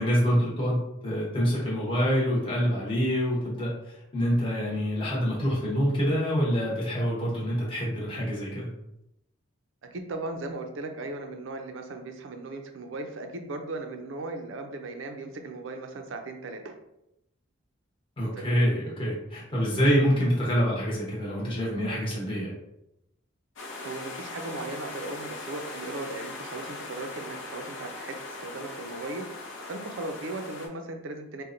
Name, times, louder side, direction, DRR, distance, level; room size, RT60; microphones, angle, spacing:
voice 1, 0.0-3.7 4.1-8.7 18.2-22.5, equal, 25° left, -6 dB, 0.9 m, -26 dB
voice 2, 9.8-16.8 18.3-18.5 23.8-29.3 29.7-31.4, right 2 dB, 70° right, 5 dB, 0.4 m, -37 dB
sound 1, 23.6-30.7, left 2 dB, 65° left, 0.6 m, -40 dB
4.1 x 2.2 x 2.5 m, 0.85 s
head